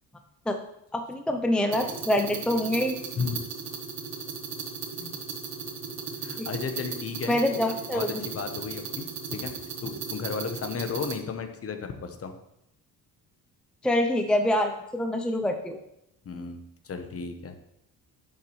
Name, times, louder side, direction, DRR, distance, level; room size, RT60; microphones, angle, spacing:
voice 1, 0.9-3.0 7.3-8.2 13.8-15.8, left 1 dB, ahead, 5 dB, 0.5 m, -25 dB
sound 1, 1.7-11.2, right 6 dB, 65° right, 1.4 m, -36 dB
voice 2, 6.2-7.4 7.9-9.5 9.8-12.4 16.2-17.6, left 5 dB, 40° left, 7 dB, 1.0 m, -34 dB
10.5 x 7.5 x 3.2 m, 0.80 s
cardioid pair, 130°, 36 cm